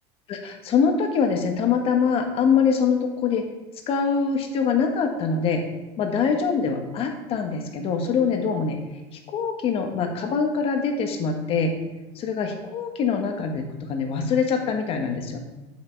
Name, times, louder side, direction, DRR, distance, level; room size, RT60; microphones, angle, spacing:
voice 1, 0.3-3.4 3.9-5.6 6.0-8.8 9.1-15.4, left 5 dB, 40° left, 4 dB, 1.5 m, -24 dB
7.9 x 7.4 x 4.5 m, 1.1 s
supercardioid pair, 140°, 15 cm